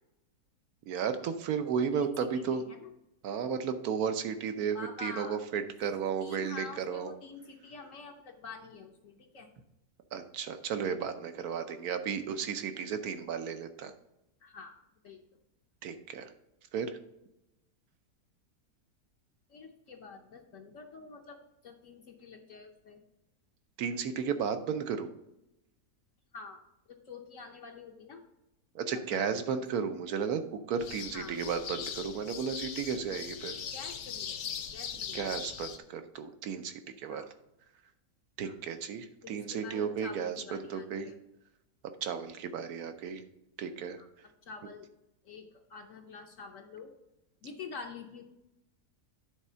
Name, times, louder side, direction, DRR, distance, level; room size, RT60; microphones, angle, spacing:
voice 1, 0.9-2.6 3.2-7.1 10.1-13.9 15.8-16.3 16.7-17.0 23.8-25.1 28.7-33.5 35.1-37.2 38.4-40.4 40.7-41.1 42.0-43.2 43.6-44.0, right 6 dB, 70° right, 9 dB, 1.3 m, -34 dB
voice 2, 1.9-2.9 4.7-5.4 6.2-9.5 14.4-15.2 19.5-23.0 26.3-26.6 26.9-28.2 28.9-29.6 31.1-31.4 33.7-35.5 37.1-37.3 38.4-38.5 39.2-41.2 44.0-44.1 44.4-44.9 45.2-46.9 47.4-48.3, left 4 dB, 60° left, 2 dB, 1.1 m, -47 dB
sound 1, 30.8-35.8, left 7 dB, 80° left, 1.3 m, -40 dB
9.8 x 4.2 x 5.6 m, 0.87 s
omnidirectional pair, 1.7 m